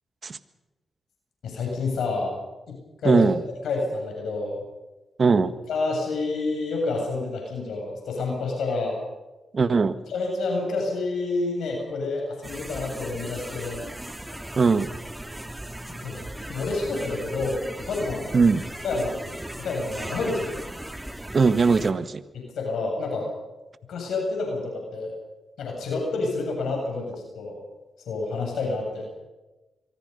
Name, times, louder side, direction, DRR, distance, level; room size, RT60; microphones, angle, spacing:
voice 1, 1.4-2.3 2.7-2.8 3.0-3.3 3.6-4.6 5.7-9.0 10.1-13.8 14.3-14.4 15.9-18.4 18.8-20.5 22.3-23.3 23.9-25.2 25.6-27.6 28.1-29.1, left 3 dB, 80° left, 0 dB, 7.7 m, -29 dB
voice 2, 3.0-3.4 5.2-5.5 9.5-10.0 14.6-14.9 18.3-18.7 21.3-22.2, right 4 dB, 50° right, 12 dB, 1.5 m, -20 dB
sound 1, 12.4-21.9, right 1 dB, 10° right, 2.8 m, -37 dB
25.5 x 24.0 x 5.5 m, 1.1 s
supercardioid pair, 55°, 0 cm